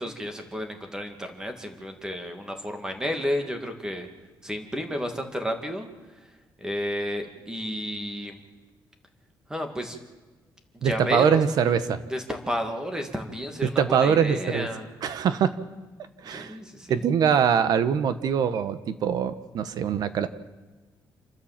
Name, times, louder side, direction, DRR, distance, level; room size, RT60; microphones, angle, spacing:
voice 1, 0.0-4.1 4.4-5.9 6.6-8.4 9.5-10.0 10.7-11.8 12.1-14.9 16.2-17.1, equal, 10° right, 5 dB, 2.2 m, -32 dB
voice 2, 10.8-12.0 13.6-14.7 15.0-15.5 16.2-16.5 16.9-20.3, right 7 dB, 60° right, 12 dB, 1.2 m, -23 dB
28.0 x 13.0 x 7.5 m, 1.3 s
cardioid pair, 170°, 8 cm